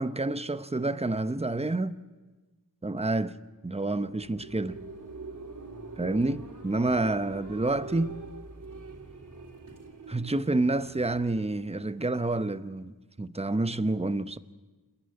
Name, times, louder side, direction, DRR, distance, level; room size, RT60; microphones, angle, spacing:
voice 1, 0.0-2.0 2.8-3.4 3.6-4.8 6.0-8.2 10.1-12.9 13.2-14.4, right 2 dB, 15° right, 0.8 m, -28 dB
sound 1, 4.0-12.5, right 3 dB, 60° right, 3.0 m, -44 dB
28.5 x 10.0 x 9.3 m
wide cardioid pair, 55°, 35 cm